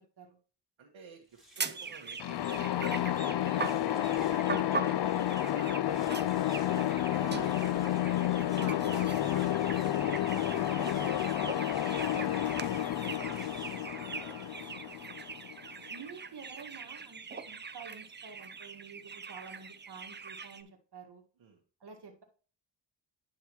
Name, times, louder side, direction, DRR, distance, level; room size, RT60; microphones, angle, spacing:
voice 1, 0.8-2.9 3.4-8.0 8.8-15.1 17.2-17.3 21.4-21.6, right 5 dB, 80° right, -2 dB, 1.5 m, -53 dB
sound 1, 1.2-14.9, right 1 dB, ahead, 3.3 m, -60 dB
sound 2, 1.6-20.6, right 5 dB, 25° right, 0.5 m, -42 dB
sound 3, 2.2-15.9, left 12 dB, 60° left, 0.5 m, -31 dB
voice 2, 6.5-7.6 8.6-9.7 13.2-13.7 15.9-21.2 21.8-22.2, right 5 dB, 55° right, 2 dB, 1.8 m, -49 dB
9.8 x 5.8 x 3.0 m, 0.39 s
wide cardioid pair, 90°, 47 cm